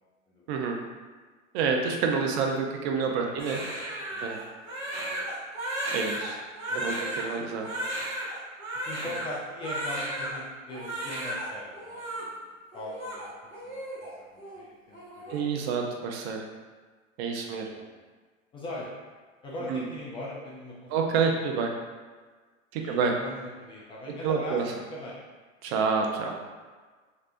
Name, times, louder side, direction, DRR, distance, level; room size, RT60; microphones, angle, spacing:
voice 1, 1.5-3.6 4.2-4.4 5.9-6.4 6.7-7.7 15.3-16.4 17.2-17.7 19.7-19.8 20.9-21.7 22.7-23.2 24.2-24.6 25.6-26.4, right 5 dB, 50° right, 2 dB, 0.7 m, -28 dB
voice 2, 3.2-4.6 5.0-5.3 6.7-7.0 7.4-7.5 7.7-7.9 8.9-15.8 17.4-18.0 18.5-18.9 19.4-20.9 22.7-24.6 24.9-25.2, left 1 dB, 15° left, -5 dB, 0.3 m, -41 dB
Crying sobbing, 3.4-10.4 10.7-11.5 11.7-12.2 12.7-14.1 14.4-14.6 14.9-15.4, right 1 dB, 90° right, 1.1 m, -34 dB
3.2 x 3.0 x 2.5 m, 1.4 s
hypercardioid pair, 100°, 40 cm